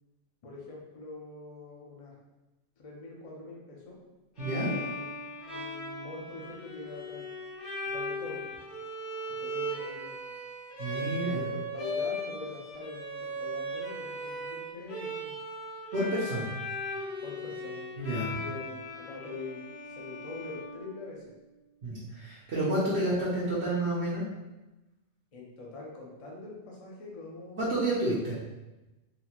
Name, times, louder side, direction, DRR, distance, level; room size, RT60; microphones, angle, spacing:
voice 1, 0.4-2.2 2.8-4.0 4.6-7.3 7.8-8.5 9.4-10.2 11.3-15.4 17.2-17.8 18.4-19.6 19.9-21.3 25.3-27.7, left 3 dB, 40° left, -3 dB, 0.6 m, -44 dB
Bowed string instrument, 4.4-21.3, equal, 70° left, 1.4 m, -38 dB
voice 2, 4.4-4.7 10.8-11.4 15.9-16.5 18.0-18.3 21.8-24.2 27.6-28.4, right 1 dB, 70° right, -10 dB, 1.1 m, -30 dB
3.9 x 2.1 x 2.9 m, 1.0 s
omnidirectional pair, 1.2 m